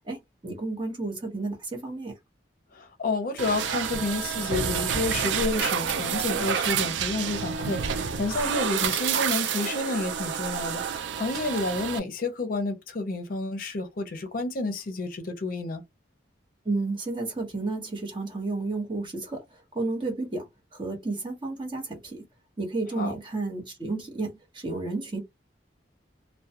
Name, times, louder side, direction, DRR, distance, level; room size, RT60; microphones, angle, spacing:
voice 1, 0.1-2.1 16.6-22.2 22.6-25.2, right 3 dB, 30° right, 0.9 m, -32 dB
voice 2, 2.7-15.8 23.0-23.1, left 3 dB, 50° left, 0.6 m, -30 dB
sound 1, 3.4-12.0, right 7 dB, 85° right, 0.4 m, -29 dB
2.2 x 2.1 x 2.7 m
head